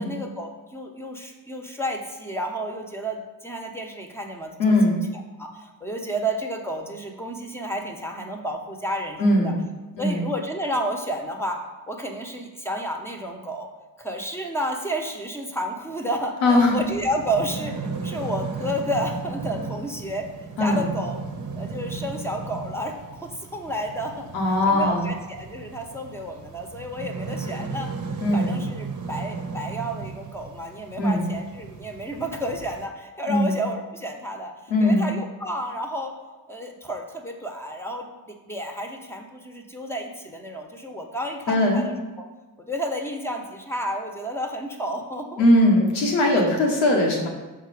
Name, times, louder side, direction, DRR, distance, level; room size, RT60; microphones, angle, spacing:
voice 1, 0.0-5.0 5.4-9.5 10.0-11.6 11.9-13.7 14.0-20.3 20.6-21.2 21.6-23.0 23.2-24.3 24.7-27.9 28.3-36.1 36.5-42.2 42.6-45.4 46.3-46.6, equal, 5° left, 2 dB, 1.3 m, -31 dB
voice 2, 4.6-5.0 9.2-9.6 10.0-10.2 16.4-16.8 20.6-20.9 24.3-25.1 28.2-28.5 31.0-31.2 33.3-33.5 34.7-35.1 41.5-41.8 45.4-47.3, left 1 dB, 90° left, -2 dB, 1.4 m, -19 dB
sound 1, 16.5-32.9, right 4 dB, 40° right, 1.2 m, -35 dB
6.3 x 3.7 x 5.1 m, 1.2 s
hypercardioid pair, 45°, 49 cm